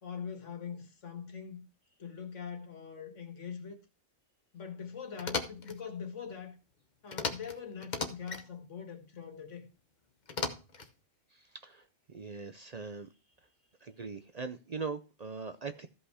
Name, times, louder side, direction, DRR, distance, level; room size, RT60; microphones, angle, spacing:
voice 1, 0.0-1.6 2.0-3.8 4.5-6.6 7.0-9.7, left 7 dB, 65° left, 2.0 m, -42 dB
sound 1, 5.2-5.8 7.1-7.6 7.8-8.4 10.3-10.9, left 4 dB, 40° left, 1.0 m, -36 dB
voice 2, 11.3-13.1 13.8-15.9, right 4 dB, 50° right, 0.5 m, -41 dB
14.0 x 5.5 x 4.8 m
omnidirectional pair, 1.3 m